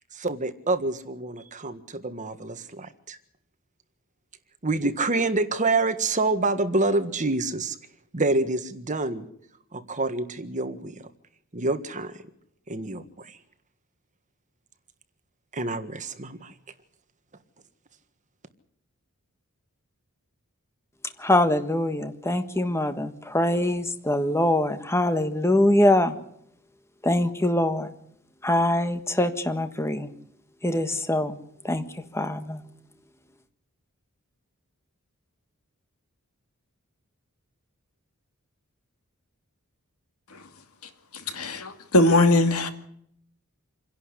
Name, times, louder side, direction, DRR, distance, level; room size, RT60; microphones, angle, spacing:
voice 1, 0.1-3.2 4.6-7.8 8.1-9.3 9.7-10.9 11.5-12.2 12.7-13.4 15.5-16.5, right 2 dB, 35° right, 1.6 m, -27 dB
voice 2, 21.2-26.1 27.0-27.9 28.4-30.1 30.6-31.4 31.6-31.8 32.1-32.6, left 1 dB, 10° left, 1.6 m, -23 dB
voice 3, 41.3-42.7, left 2 dB, 75° left, 2.4 m, -20 dB
27.5 x 11.0 x 10.0 m
head